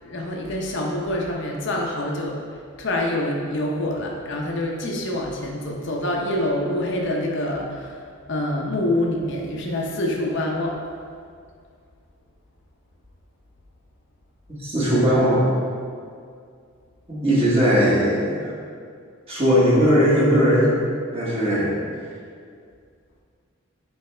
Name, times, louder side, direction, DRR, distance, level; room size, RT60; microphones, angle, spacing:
voice 1, 0.0-10.8, left 1 dB, 55° left, -1 dB, 0.8 m, -26 dB
voice 2, 14.6-15.4 17.1-18.5 19.3-20.7 21.1-21.7, equal, 25° right, -7 dB, 1.3 m, -18 dB
9.0 x 3.4 x 3.3 m, 2.2 s
head